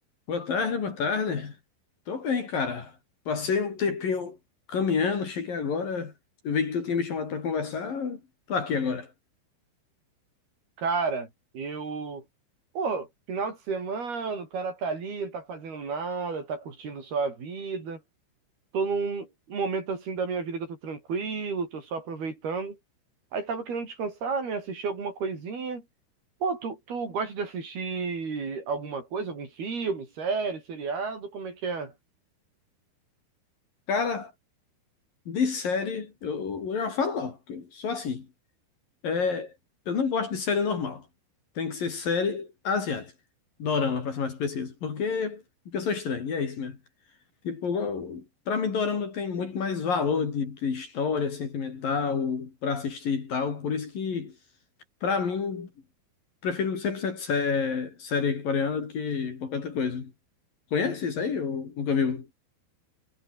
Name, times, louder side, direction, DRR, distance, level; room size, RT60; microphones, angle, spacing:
voice 1, 0.3-1.6 2.1-2.9 3.3-4.4 4.7-6.1 6.4-8.2 8.5-9.1 33.9-34.3 35.3-38.3 39.0-39.5 39.9-41.0 41.6-43.1 43.6-46.8 47.4-54.3 55.0-55.7 56.4-60.1 60.7-62.3, left 5 dB, 50° left, 4.9 m, -28 dB
voice 2, 10.8-11.3 11.5-12.2 12.8-18.0 18.7-22.8 23.3-25.8 26.4-31.9, right 4 dB, 50° right, 7.5 m, -31 dB
omnidirectional pair, 5.6 m